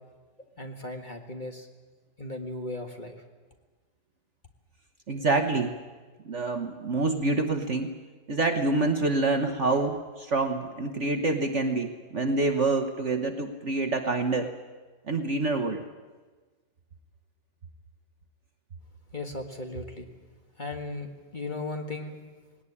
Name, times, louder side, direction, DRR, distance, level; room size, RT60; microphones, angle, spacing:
voice 1, 0.6-1.7 2.2-3.2 19.1-20.1 20.6-22.2, left 2 dB, 25° left, 4 dB, 1.8 m, -36 dB
voice 2, 5.1-5.7 6.3-7.9 8.3-14.5 15.1-15.8, right 3 dB, 45° right, 6 dB, 1.3 m, -26 dB
19.5 x 18.0 x 9.8 m, 1.4 s
omnidirectional pair, 1.9 m